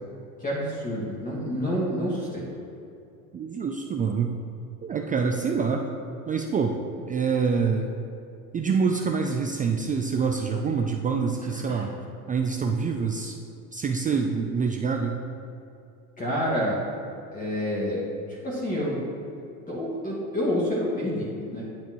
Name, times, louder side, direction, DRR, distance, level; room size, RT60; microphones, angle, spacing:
voice 1, 0.4-2.5 11.7-11.8 16.2-16.8 17.3-18.0 18.3-19.0 19.7-21.6, equal, 20° left, -7 dB, 2.0 m, -28 dB
voice 2, 3.3-4.3 4.8-5.9 6.3-6.8 7.1-7.9 8.5-11.9 12.3-13.4 13.7-15.2, right 5 dB, 20° right, 3 dB, 0.4 m, -26 dB
9.1 x 8.7 x 3.1 m, 2.6 s
hypercardioid pair, 100°, 44 cm